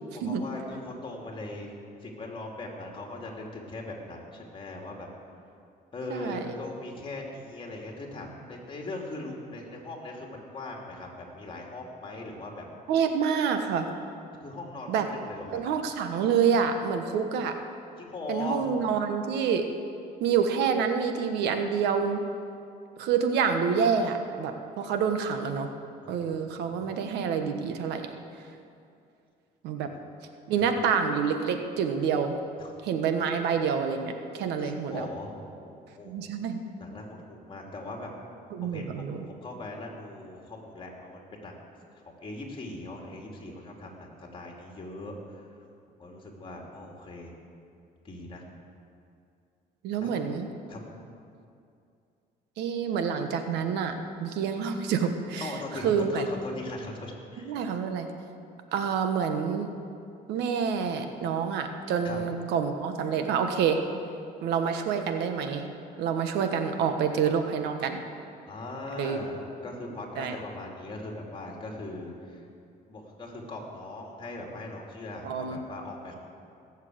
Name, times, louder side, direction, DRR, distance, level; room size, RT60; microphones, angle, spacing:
voice 1, 0.1-1.7 2.0-5.1 5.9-12.6 14.4-15.0 15.3-15.6 18.0-18.7 26.0-27.0 29.9-30.0 30.6-30.7 32.6-32.7 34.6-36.1 36.8-38.1 38.6-41.5 42.2-45.1 46.0-47.3 48.0-48.4 50.0-50.2 50.7-51.0 55.4-57.6 62.0-62.2 68.5-72.4 72.9-76.2, left 2 dB, 30° left, 0 dB, 2.9 m, -40 dB
voice 2, 6.1-6.5 12.9-13.9 14.9-15.1 15.5-17.5 18.3-19.6 20.2-22.2 23.0-25.7 26.1-28.1 29.6-29.9 30.5-32.4 32.8-35.1 36.0-36.6 38.5-39.2 49.8-50.5 52.6-55.5 55.8-56.3 57.4-58.1 58.7-59.7 60.3-63.8 64.4-65.7 66.0-68.0 69.0-69.2 70.2-70.3 75.2-75.6, right 6 dB, 85° right, 6 dB, 1.2 m, -27 dB
17.5 x 7.4 x 8.0 m, 2.5 s
cardioid pair, 110°, 17 cm